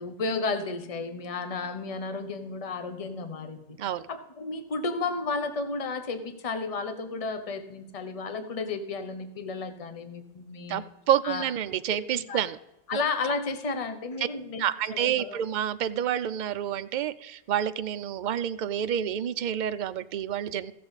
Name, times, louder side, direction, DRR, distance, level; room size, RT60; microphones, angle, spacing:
voice 1, 0.0-3.8 4.1-10.9 11.2-11.4 11.9-12.0 12.3-12.4 12.9-14.6 14.9-15.4, left 4 dB, 30° left, 8 dB, 0.9 m, -33 dB
voice 2, 10.7-12.6 14.6-20.7, right 9 dB, 60° right, 13 dB, 0.5 m, -28 dB
16.0 x 6.6 x 4.0 m, 0.93 s
omnidirectional pair, 1.2 m